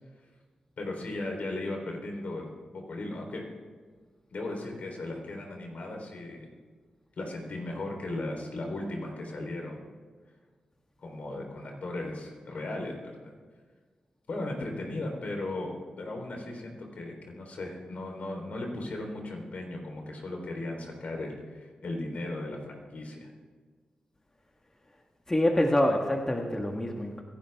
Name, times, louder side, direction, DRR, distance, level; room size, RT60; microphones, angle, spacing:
voice 1, 0.8-2.5 2.9-3.4 4.3-6.5 7.2-9.8 11.0-13.0 13.2-13.3 14.3-15.7 16.0-23.3, left 2 dB, 65° left, 1 dB, 3.7 m, -36 dB
voice 2, 25.3-27.2, left 1 dB, 20° left, 2 dB, 1.6 m, -26 dB
25.0 x 11.0 x 3.6 m, 1.5 s
cardioid pair, 60°, 3 cm